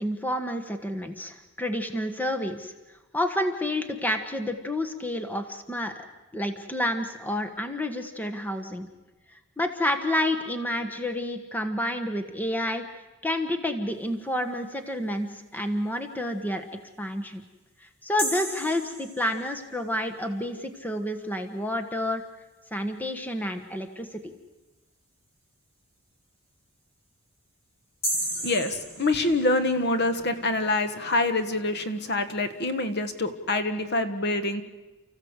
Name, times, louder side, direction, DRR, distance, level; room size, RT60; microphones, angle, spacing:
voice 1, 0.0-2.7 3.1-6.0 6.3-8.9 9.6-12.8 13.2-16.7 17.0-17.4 18.0-22.2 22.7-24.3, left 1 dB, 10° left, 6 dB, 1.3 m, -29 dB
sound 1, 18.2-19.7 28.0-29.8, right 1 dB, 25° left, 4.3 m, -33 dB
voice 2, 28.4-34.6, left 2 dB, 50° left, 10 dB, 1.4 m, -26 dB
30.0 x 15.0 x 8.1 m, 1.1 s
head